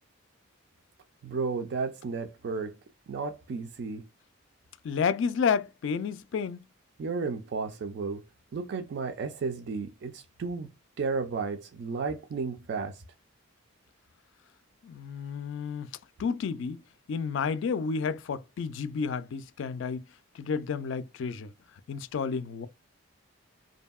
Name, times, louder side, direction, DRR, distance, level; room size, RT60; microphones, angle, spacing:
voice 1, 1.2-2.8 3.1-4.1 7.0-8.2 8.5-10.7 11.0-13.0, right 4 dB, 55° right, 0.3 m, -33 dB
voice 2, 4.8-6.7 14.8-15.9 16.2-16.8 17.1-20.0 20.3-21.5 21.9-22.7, left 6 dB, 60° left, 0.3 m, -31 dB
2.7 x 2.6 x 2.2 m
head